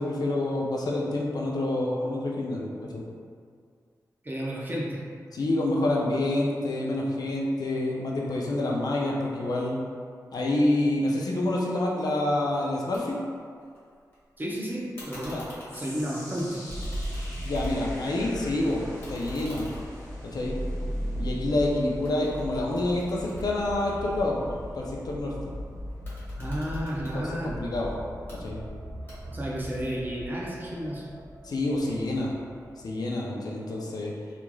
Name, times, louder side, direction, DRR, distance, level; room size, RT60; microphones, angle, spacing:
voice 1, 0.0-3.0 5.3-9.8 10.3-13.2 15.3-15.4 17.4-18.8 19.1-19.6 20.2-20.5 21.2-25.5 27.1-27.9 28.4-28.6 31.4-32.3 32.8-34.1, left 1 dB, 65° left, -3 dB, 0.4 m, -27 dB
voice 2, 4.2-5.0 14.4-15.4 15.7-16.6 26.4-27.6 29.3-31.1, equal, 25° right, -5 dB, 0.5 m, -32 dB
sound 1, 12.9-13.0 13.3-14.2 15.0-18.0 18.4-21.6 22.0-24.3 25.9-27.2 28.0-28.4 29.1-29.5, equal, 30° left, 1.2 m, -48 dB
sound 2, 15.7-28.0 28.3-28.7 29.3-29.4, equal, 10° left, 1.0 m, -49 dB
sound 3, 16.7-32.9, equal, 75° right, 0.9 m, -37 dB
3.1 x 2.4 x 2.2 m, 2.1 s
wide cardioid pair, 95°, 7 cm